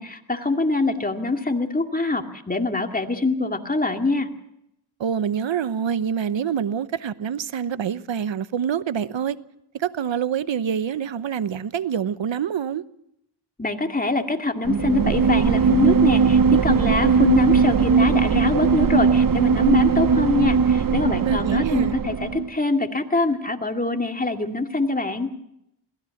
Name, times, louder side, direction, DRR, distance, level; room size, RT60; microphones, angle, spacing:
voice 1, 0.0-4.3 13.6-25.3, left 3 dB, 20° left, 2.3 m, -24 dB
voice 2, 5.0-9.4 9.7-12.8 21.1-22.0, right 8 dB, 70° right, 0.9 m, -26 dB
sound 1, 14.6-22.5, right 5 dB, 45° right, 0.8 m, -19 dB
22.0 x 16.5 x 7.2 m
cardioid pair, 50°, 47 cm